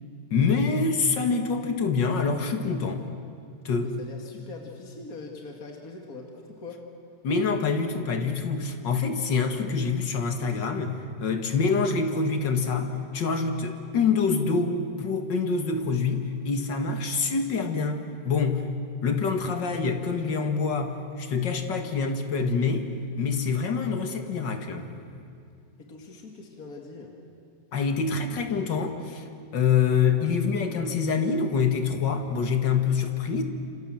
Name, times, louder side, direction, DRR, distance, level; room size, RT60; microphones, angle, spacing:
voice 1, 0.3-3.1 3.6-4.0 7.2-18.6 19.0-22.9 23.2-24.9 27.7-29.3 29.5-33.4, left 5 dB, 75° left, 5 dB, 2.5 m, -26 dB
voice 2, 3.8-6.8 25.8-27.1, left 3 dB, 50° left, 1 dB, 2.7 m, -42 dB
27.5 x 27.0 x 7.7 m, 2.4 s
omnidirectional pair, 2.0 m